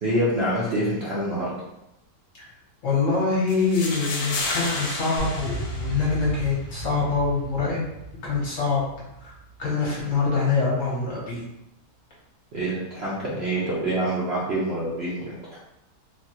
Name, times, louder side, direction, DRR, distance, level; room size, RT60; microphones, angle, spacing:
voice 1, 0.0-1.5 12.5-15.6, right 1 dB, 55° right, -7 dB, 0.7 m, -26 dB
voice 2, 2.8-7.8 8.2-8.8 9.2-9.3 9.6-11.4, left 4 dB, 55° left, -6 dB, 1.1 m, -24 dB
sound 1, 3.5-6.5, left 3 dB, 75° left, 1.0 m, -32 dB
sound 2, 5.2-10.5, right 3 dB, 20° left, 0.6 m, -36 dB
3.3 x 2.2 x 2.7 m, 0.89 s
omnidirectional pair, 1.7 m